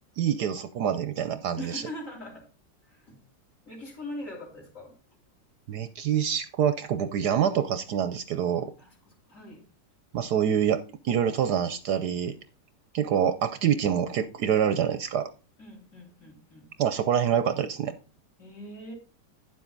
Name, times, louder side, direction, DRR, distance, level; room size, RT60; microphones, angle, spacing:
voice 1, 0.2-1.8 5.7-8.7 10.1-12.4 12.9-15.3 16.8-17.9, right 9 dB, 70° right, 1.2 m, -26 dB
voice 2, 1.6-2.5 2.9-3.2 3.6-5.0 8.8-9.7 15.6-16.7 18.4-18.9, left 1 dB, 45° left, 3.8 m, -42 dB
9.9 x 7.5 x 3.9 m
omnidirectional pair, 2.0 m